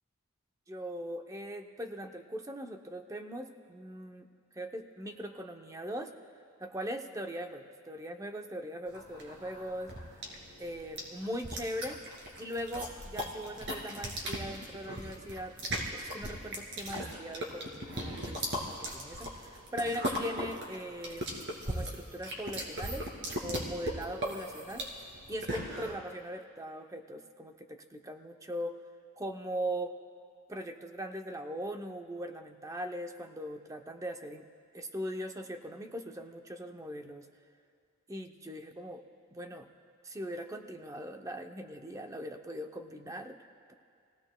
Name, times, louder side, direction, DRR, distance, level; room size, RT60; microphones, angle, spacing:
voice 1, 0.7-4.3 4.5-6.1 6.6-9.9 10.6-12.0 12.4-15.6 15.9-23.1 23.4-24.9 25.3-28.8 29.2-30.0 30.5-34.4 34.7-37.3 38.1-39.0 39.3-39.7 40.0-43.7, equal, 15° right, 5 dB, 0.6 m, -40 dB
sound 1, 8.9-26.0, equal, 55° right, 2.5 m, -38 dB
27.5 x 17.0 x 2.2 m, 2.3 s
head